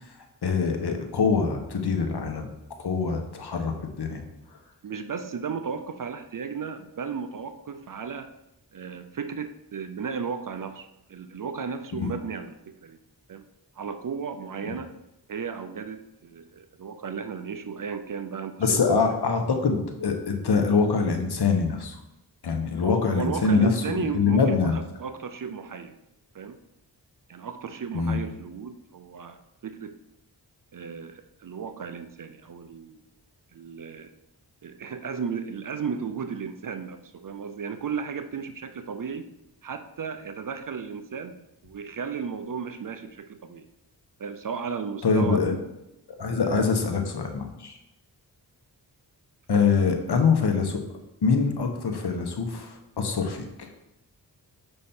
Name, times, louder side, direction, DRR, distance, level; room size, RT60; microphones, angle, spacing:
voice 1, 0.4-2.5 2.8-4.2 11.9-12.1 18.6-22.0 22.4-24.8 27.9-28.2 45.0-45.5 46.2-47.7 49.5-50.8 51.2-53.7, left 5 dB, 70° left, 4 dB, 1.2 m, -24 dB
voice 2, 4.8-8.3 8.7-13.0 13.3-13.4 13.8-14.9 15.3-18.8 22.8-25.9 26.3-26.6 27.3-30.0 30.7-33.0 33.5-34.1 34.6-39.3 39.6-41.4 41.6-43.6 44.2-45.6 46.4-46.7 49.5-49.7, right 6 dB, 50° right, 9 dB, 0.6 m, -34 dB
6.7 x 5.3 x 4.3 m, 0.89 s
cardioid pair, 65°, 41 cm